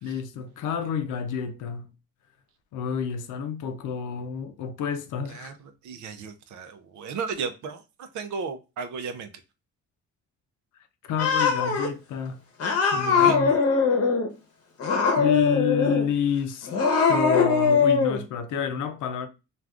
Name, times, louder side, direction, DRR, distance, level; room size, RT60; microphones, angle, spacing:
voice 1, 0.0-1.9 2.7-5.5 11.0-12.4 12.9-13.6 15.2-16.7 17.1-19.3, left 8 dB, 85° left, 0.6 m, -29 dB
voice 2, 5.8-9.3 13.0-13.4, right 5 dB, 70° right, 0.6 m, -34 dB
Cat, 11.2-11.9 12.6-14.3 14.8-16.1 16.6-18.2, left 5 dB, 50° left, 0.9 m, -21 dB
3.4 x 2.4 x 2.4 m
cardioid pair, 90°, 30 cm